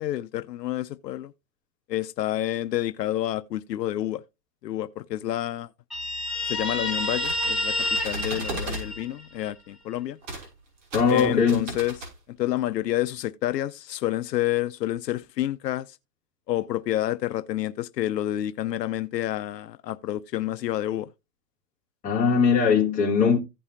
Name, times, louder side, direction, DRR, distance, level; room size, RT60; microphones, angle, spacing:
voice 1, 0.0-1.3 1.9-4.2 4.6-5.7 6.5-7.7 8.0-10.2 11.1-11.9 12.4-16.0 16.5-21.1, left 13 dB, 75° left, 0.7 m, -29 dB
Guitar, 5.9-9.5, left 1 dB, ahead, 0.5 m, -29 dB
sound 1, 7.0-8.9 10.2-10.5 10.8-12.1, right 2 dB, 45° right, 6.3 m, -35 dB
voice 2, 10.9-11.7 22.0-23.4, left 6 dB, 15° left, 2.3 m, -20 dB
16.0 x 5.4 x 2.7 m
hypercardioid pair, 165°, 49 cm